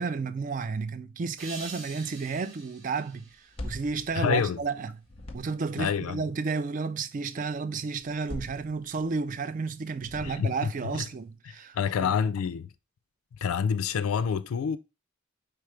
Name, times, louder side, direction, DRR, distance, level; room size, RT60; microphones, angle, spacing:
voice 1, 0.0-3.3 3.6-4.9 5.3-12.1, right 4 dB, 40° right, 0.3 m, -32 dB
sound 1, 1.4-4.5, right 4 dB, 70° right, 1.9 m, -46 dB
sound 2, 3.3-4.8 5.0-5.8 8.0-9.2 10.0-10.8, left 1 dB, 30° left, 0.7 m, -42 dB
voice 2, 4.1-4.6 5.8-6.2 10.2-10.5 10.9-11.0 11.7-12.7 13.3-14.8, left 7 dB, 85° left, 0.3 m, -27 dB
4.9 x 3.4 x 3.2 m
head